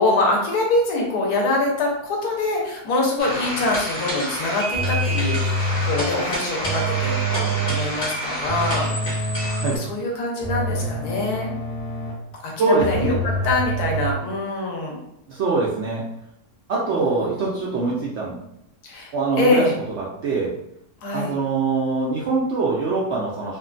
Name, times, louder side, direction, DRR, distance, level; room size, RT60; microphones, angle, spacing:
voice 1, 0.0-9.3 9.7-11.5 12.4-15.0 16.9-17.5 18.8-19.1 19.4-19.7 21.0-21.3, left 2 dB, 75° left, -1 dB, 1.3 m, -24 dB
sound 1, 3.2-9.8, equal, 30° left, 1.1 m, -29 dB
sound 2, 4.7-6.1 6.6-8.0 8.5-9.9 10.4-12.3 12.8-14.1, right 1 dB, 55° left, 1.1 m, -26 dB
voice 2, 12.6-13.1 15.3-16.0 16.7-18.4 19.1-19.6 20.0-20.5 21.1-23.6, right 3 dB, 65° right, -4 dB, 0.7 m, -23 dB
3.5 x 2.2 x 2.5 m, 0.79 s
omnidirectional pair, 1.7 m